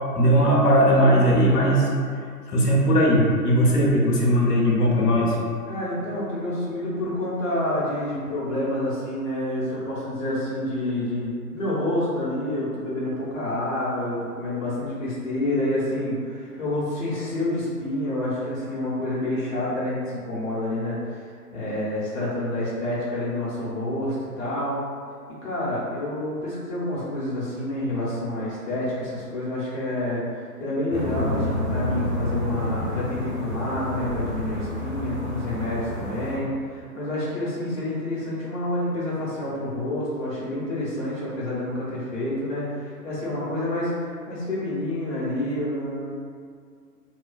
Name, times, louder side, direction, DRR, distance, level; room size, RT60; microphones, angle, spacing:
voice 1, 0.1-1.9 2.5-5.4, equal, 75° left, -3 dB, 0.7 m, -18 dB
voice 2, 5.7-21.2 21.5-24.8 25.4-46.1, left 1 dB, 55° left, -8 dB, 0.9 m, -28 dB
sound 1, 30.9-36.4, left 1 dB, 45° right, 0.7 m, -29 dB
2.5 x 2.2 x 2.2 m, 2.1 s
figure-of-eight pair, 120°, 48 cm